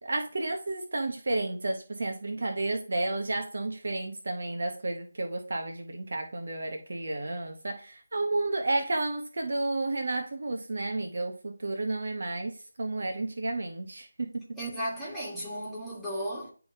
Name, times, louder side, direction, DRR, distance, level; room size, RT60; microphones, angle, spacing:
voice 1, 0.0-14.5, right 2 dB, 55° right, 1.0 m, -32 dB
voice 2, 14.6-16.5, equal, ahead, 1.9 m, -35 dB
10.5 x 3.9 x 2.8 m
figure-of-eight pair, 160°, 0 cm